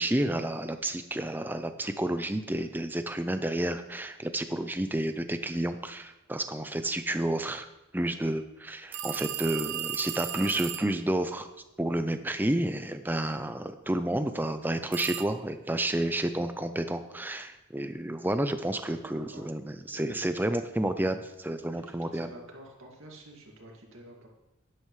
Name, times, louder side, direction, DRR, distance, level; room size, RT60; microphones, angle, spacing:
voice 1, 0.0-7.7 7.9-11.5 11.8-22.3, right 1 dB, 10° right, 9 dB, 0.5 m, -30 dB
sound 1, 8.9-11.0 14.9-15.2, right 11 dB, 65° right, 0.5 m, -35 dB
voice 2, 21.6-24.3, right 1 dB, 90° right, -1 dB, 2.3 m, -48 dB
11.5 x 11.0 x 3.2 m, 0.95 s
head